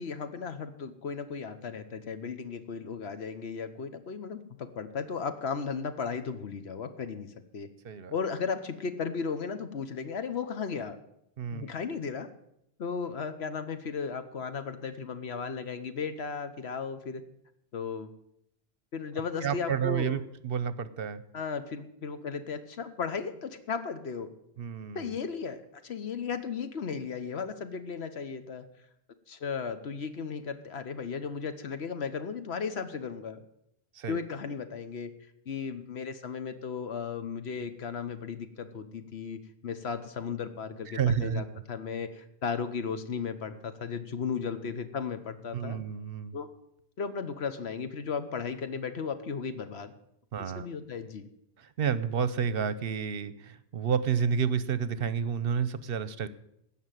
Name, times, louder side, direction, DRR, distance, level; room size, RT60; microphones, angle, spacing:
voice 1, 0.0-7.7 8.1-11.0 11.5-12.3 12.8-17.2 17.7-18.1 18.9-20.2 21.3-24.3 24.9-25.6 25.8-28.6 29.3-33.4 34.1-35.1 35.5-45.8 46.3-46.5 47.0-49.9 50.4-51.3, left 6 dB, 85° left, 10 dB, 1.3 m, -35 dB
voice 2, 11.4-11.7 19.4-21.2 24.6-25.2 33.9-34.2 40.9-41.5 45.5-46.4 50.3-50.7 51.6-56.3, right 7 dB, 65° right, 16 dB, 0.9 m, -30 dB
16.0 x 5.7 x 8.9 m, 0.78 s
omnidirectional pair, 1.1 m